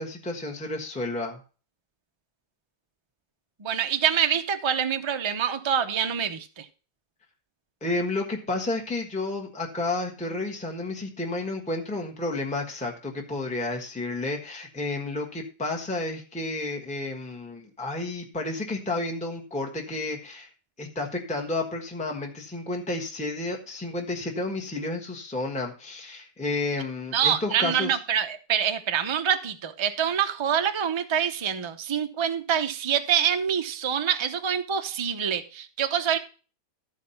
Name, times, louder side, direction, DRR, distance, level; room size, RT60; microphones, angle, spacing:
voice 1, 0.0-1.4 7.8-20.5 20.8-28.0, left 2 dB, 5° left, 1.3 m, -31 dB
voice 2, 3.6-6.7 27.1-36.2, right 8 dB, 30° right, 0.5 m, -26 dB
13.0 x 4.8 x 5.7 m
omnidirectional pair, 1.8 m